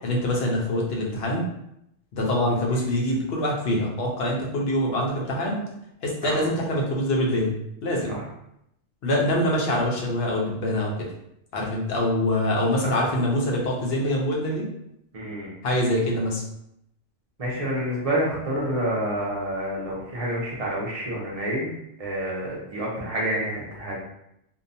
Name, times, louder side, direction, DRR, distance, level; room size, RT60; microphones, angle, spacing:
voice 1, 0.0-1.4 2.1-5.6 6.0-7.5 7.8-8.2 9.0-11.1 11.5-14.7 15.6-16.4, left 1 dB, 60° left, -2 dB, 0.8 m, -24 dB
voice 2, 15.1-15.5 17.4-24.0, right 1 dB, 40° right, -5 dB, 0.5 m, -28 dB
2.7 x 2.1 x 2.6 m, 0.79 s
omnidirectional pair, 1.3 m